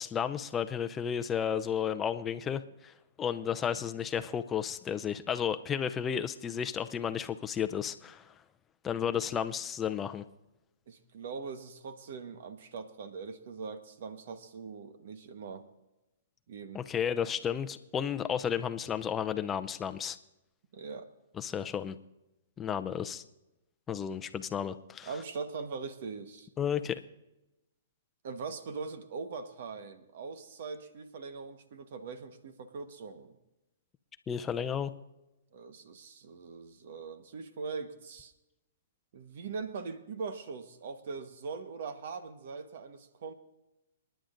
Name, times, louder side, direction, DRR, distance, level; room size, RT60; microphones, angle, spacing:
voice 1, 0.0-2.9 3.2-8.2 8.8-10.2 16.7-20.2 21.4-22.0 22.6-23.2 23.9-25.1 26.6-27.0 34.3-34.9, left 8 dB, 15° left, 10 dB, 0.6 m, -33 dB
voice 2, 10.9-15.7 16.5-16.8 20.7-21.1 25.0-26.5 28.2-33.4 35.5-38.3 39.1-43.3, right 5 dB, 60° right, 9 dB, 1.2 m, -41 dB
28.0 x 10.5 x 2.6 m, 0.95 s
hypercardioid pair, 145°, 0 cm